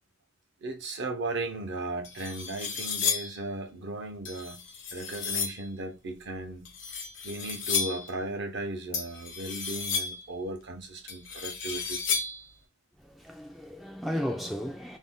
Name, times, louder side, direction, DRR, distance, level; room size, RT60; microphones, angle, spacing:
voice 1, 0.6-4.7 4.9-6.7 7.2-12.2, right 2 dB, 60° right, 0.7 m, -36 dB
sound 1, 1.5-1.6 2.0-3.4 4.3-5.7 6.7-8.1 8.9-10.3 11.1-12.5, left 6 dB, 65° left, 0.8 m, -33 dB
voice 2, 13.0-15.0, equal, ahead, 0.3 m, -34 dB
2.5 x 2.2 x 3.6 m
head